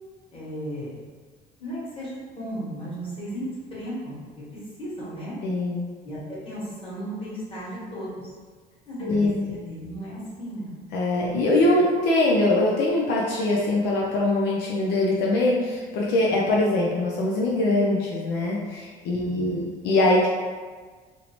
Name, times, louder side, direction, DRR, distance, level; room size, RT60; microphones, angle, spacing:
voice 1, 0.3-1.0 1.6-2.1 2.4-4.1 4.8-5.3 6.0-8.1 8.9-10.8 19.2-19.6, equal, 30° left, -9 dB, 1.3 m, -35 dB
voice 2, 5.4-5.9 9.0-9.4 10.9-20.3, left 2 dB, 85° left, -3 dB, 0.4 m, -22 dB
2.6 x 2.0 x 2.9 m, 1.5 s
cardioid pair, 110°, 17 cm